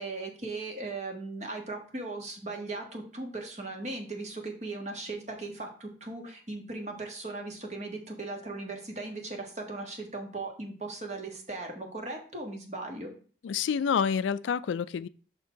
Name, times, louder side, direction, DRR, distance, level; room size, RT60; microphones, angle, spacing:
voice 1, 0.0-13.1, right 2 dB, 35° right, 1.4 m, -38 dB
voice 2, 13.4-15.1, left 7 dB, 80° left, 0.3 m, -28 dB
6.1 x 4.4 x 5.0 m
head